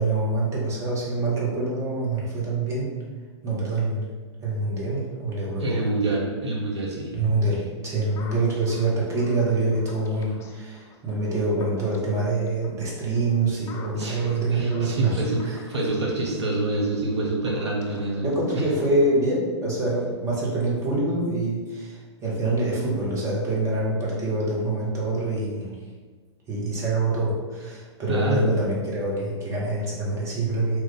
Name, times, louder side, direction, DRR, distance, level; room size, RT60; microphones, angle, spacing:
voice 1, 0.0-3.0 3.4-4.1 4.4-5.9 7.1-15.6 18.2-25.7 26.5-30.8, right 2 dB, 20° right, -5 dB, 1.0 m, -25 dB
voice 2, 5.6-7.1 13.9-18.3 28.1-28.5, right 2 dB, 65° right, -3 dB, 1.0 m, -27 dB
sound 1, 8.2-19.2, left 5 dB, 20° left, 0.3 m, -47 dB
3.0 x 2.5 x 3.6 m, 1.4 s
figure-of-eight pair, 105°, 15 cm